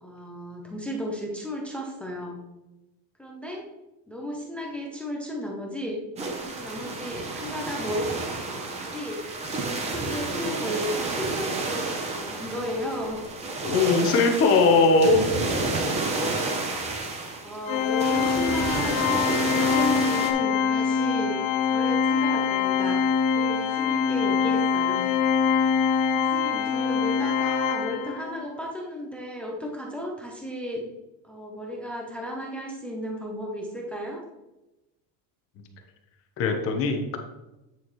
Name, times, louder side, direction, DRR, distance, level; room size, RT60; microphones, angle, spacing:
voice 1, 0.0-2.4 3.2-3.6 4.1-6.0 6.4-8.1 8.7-9.2 9.8-11.9 12.1-13.2 16.0-16.3 16.6-16.9 17.4-23.0 23.3-25.1 26.1-30.8 31.2-34.2, left 1 dB, 5° left, -1 dB, 0.4 m, -34 dB
sound 1, 6.2-20.3, right 3 dB, 15° right, 0.7 m, -30 dB
voice 2, 13.6-15.2 36.4-37.2, left 3 dB, 30° left, 4 dB, 1.1 m, -20 dB
Organ, 17.7-28.4, left 6 dB, 65° left, 1.0 m, -24 dB
8.7 x 7.0 x 3.1 m, 0.96 s
cardioid pair, 180°, 42 cm